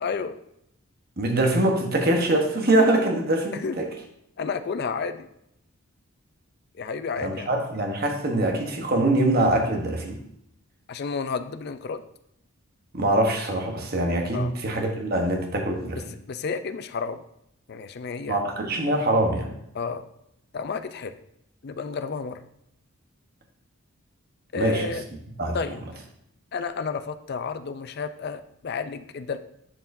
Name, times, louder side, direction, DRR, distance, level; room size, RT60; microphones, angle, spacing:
voice 1, 0.0-0.4 3.5-3.8 4.4-5.3 6.7-7.6 10.9-12.0 14.3-14.5 16.3-17.2 17.7-18.4 19.7-20.1 20.5-21.1 21.6-22.4 24.5-25.0 25.5-25.8 26.5-29.4, left 5 dB, 45° left, 10 dB, 0.4 m, -31 dB
voice 2, 1.2-3.9 7.2-10.2 12.9-16.0 18.3-19.5 24.5-24.8 25.4-25.6, right 1 dB, 45° right, 2 dB, 1.0 m, -23 dB
10.5 x 4.5 x 2.6 m, 0.77 s
head